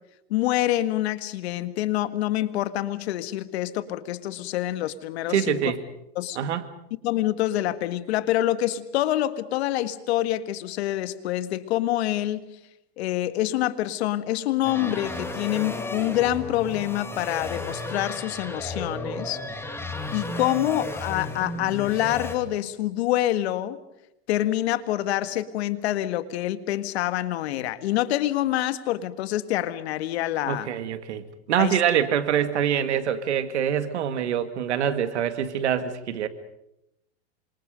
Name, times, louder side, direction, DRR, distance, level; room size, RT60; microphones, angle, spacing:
voice 1, 0.3-5.6 6.2-6.4 7.0-12.4 13.0-19.4 20.1-23.8 24.3-30.7 31.6-31.8, left 14 dB, 70° left, 12 dB, 1.7 m, -26 dB
voice 2, 5.3-5.8 6.4-6.7 30.5-36.3, right 9 dB, 85° right, 9 dB, 2.3 m, -25 dB
sound 1, 14.6-22.4, left 2 dB, 5° left, 2.3 m, -33 dB
28.0 x 26.0 x 5.2 m, 0.85 s
supercardioid pair, 130°, 33 cm